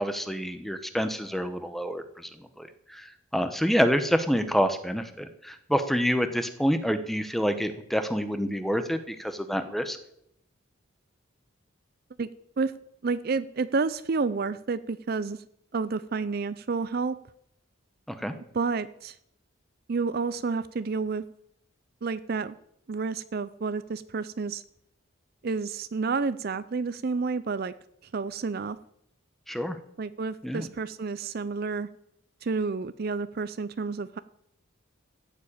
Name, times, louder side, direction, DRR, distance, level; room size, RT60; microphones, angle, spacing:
voice 1, 0.0-10.0 18.1-18.3 29.5-29.8 30.4-30.7, equal, ahead, 9 dB, 1.0 m, -27 dB
voice 2, 13.0-15.4 15.7-17.2 18.5-19.2 19.9-21.2 22.0-22.6 22.9-24.6 25.4-27.7 28.1-28.8 30.0-31.9 32.4-34.2, right 4 dB, 50° right, 14 dB, 0.5 m, -30 dB
14.5 x 7.4 x 8.8 m, 0.74 s
head